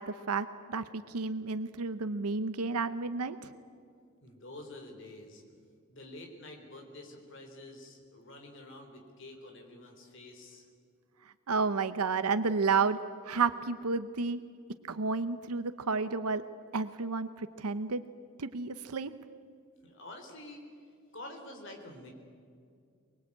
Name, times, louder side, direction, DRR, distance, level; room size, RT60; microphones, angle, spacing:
voice 1, 0.0-3.5 11.5-13.0 13.2-14.4 14.9-16.4 16.7-18.0 18.4-19.1, right 4 dB, 90° right, 11 dB, 0.8 m, -31 dB
voice 2, 4.2-5.4 5.9-10.6 19.8-20.6 21.1-22.1, left 1 dB, 55° left, 3 dB, 3.9 m, -48 dB
24.0 x 21.0 x 8.7 m, 2.3 s
head